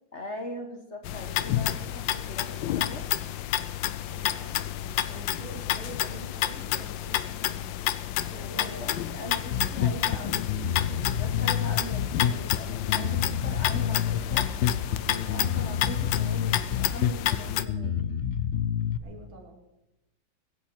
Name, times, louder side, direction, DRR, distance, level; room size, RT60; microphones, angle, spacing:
voice 1, 0.1-3.1 8.5-14.5 15.0-18.0, left 1 dB, 40° left, 5 dB, 1.5 m, -41 dB
sound 1, 1.0-17.6, left 12 dB, 70° left, 1.3 m, -30 dB
voice 2, 4.0-7.7 8.2-8.8 15.7-16.1 19.0-19.6, right 3 dB, 75° right, 2 dB, 3.3 m, -46 dB
Bass guitar, 9.4-19.0, left 9 dB, 90° left, 0.6 m, -28 dB
sound 2, 12.9-16.7, left 3 dB, 25° right, 3.8 m, -47 dB
23.0 x 10.0 x 4.5 m, 0.93 s
omnidirectional pair, 2.3 m